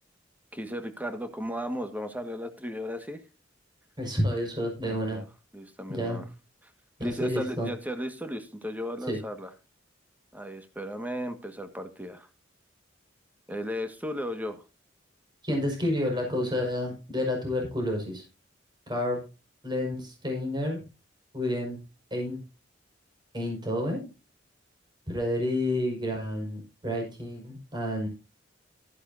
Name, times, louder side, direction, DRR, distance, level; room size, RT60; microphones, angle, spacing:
voice 1, 0.5-3.2 4.9-5.2 5.5-6.2 7.0-9.5 10.3-12.3 13.5-14.6, equal, 10° right, 7 dB, 1.7 m, -35 dB
voice 2, 4.0-5.2 5.9-6.2 7.0-7.7 9.1-9.2 15.4-18.2 18.9-19.2 19.6-20.8 21.3-21.8 22.1-22.4 23.3-24.1 25.1-28.1, left 1 dB, 25° right, 1 dB, 5.6 m, -30 dB
14.0 x 11.5 x 2.8 m, 0.30 s
head